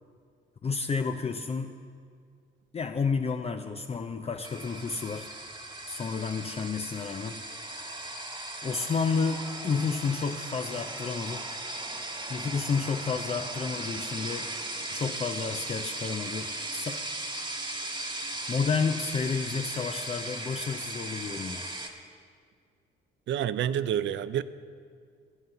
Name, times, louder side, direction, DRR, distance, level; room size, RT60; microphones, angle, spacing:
voice 1, 0.6-1.7 2.7-5.3 5.9-7.4 8.6-11.4 12.3-14.5 14.9-17.0 18.5-21.7, left 5 dB, 30° left, 0.5 m, -31 dB
sound 1, 4.4-21.9, right 2 dB, 25° right, 1.4 m, -37 dB
voice 2, 23.3-24.4, right 10 dB, 70° right, 0.5 m, -28 dB
11.0 x 9.3 x 7.0 m
cardioid pair, 90°, 20 cm